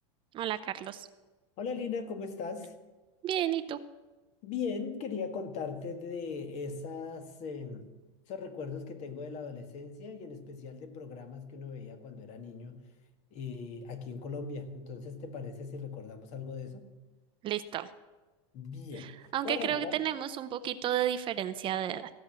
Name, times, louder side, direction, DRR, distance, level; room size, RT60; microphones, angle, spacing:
voice 1, 0.3-1.1 3.2-3.8 17.4-17.9 19.0-22.1, right 11 dB, 35° right, 12 dB, 0.6 m, -32 dB
voice 2, 1.6-2.7 4.4-7.9 8.3-12.8 13.3-16.9 18.5-20.0, left 5 dB, 45° left, 8 dB, 1.7 m, -39 dB
15.0 x 6.1 x 8.7 m, 1.2 s
supercardioid pair, 130°, 16 cm